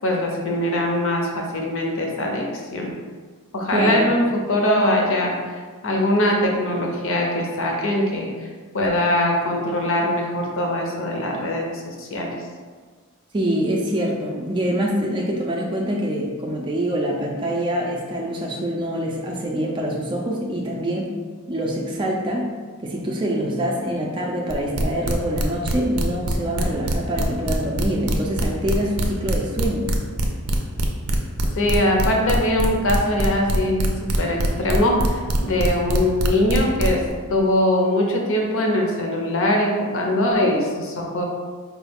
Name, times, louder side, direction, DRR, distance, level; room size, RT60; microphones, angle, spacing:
voice 1, 0.0-2.5 2.7-2.9 3.5-5.3 5.8-8.3 8.7-12.3 31.6-37.0 37.3-41.3, left 1 dB, 65° left, 0 dB, 0.6 m, -22 dB
voice 2, 3.7-4.1 13.3-21.1 21.5-22.5 22.8-29.9, equal, 20° right, -1 dB, 0.4 m, -25 dB
sound 1, 24.5-37.1, right 1 dB, 90° right, 0.5 m, -23 dB
4.6 x 2.3 x 3.4 m, 1.5 s
head